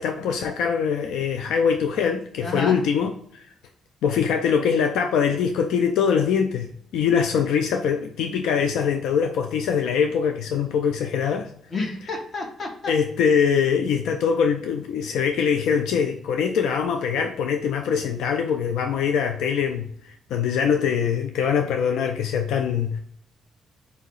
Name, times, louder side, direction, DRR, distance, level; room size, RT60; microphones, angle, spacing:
voice 1, 0.0-3.4 4.0-11.5 12.9-23.0, left 7 dB, 85° left, 5 dB, 0.3 m, -23 dB
voice 2, 2.4-2.8 11.7-12.9, left 3 dB, 45° left, 1 dB, 1.3 m, -30 dB
4.0 x 2.7 x 3.8 m, 0.64 s
cardioid pair, 90°, 0 cm